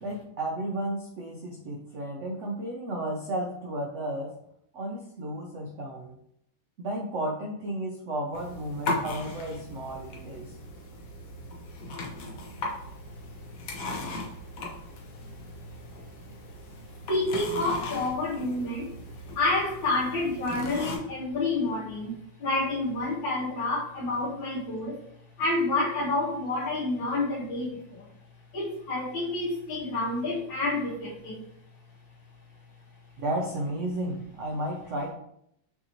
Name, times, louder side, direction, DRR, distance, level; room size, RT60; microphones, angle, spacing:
voice 1, 0.0-4.3 4.7-6.1 6.8-10.5 33.2-35.1, right 1 dB, 75° right, -1 dB, 0.6 m, -33 dB
sound 1, 8.3-21.0, left 2 dB, 60° left, 1.1 m, -37 dB
voice 2, 17.1-18.9 19.3-25.0 25.4-28.0 28.5-31.4, left 2 dB, 75° left, -10 dB, 1.7 m, -29 dB
5.8 x 2.7 x 2.9 m, 0.75 s
omnidirectional pair, 2.0 m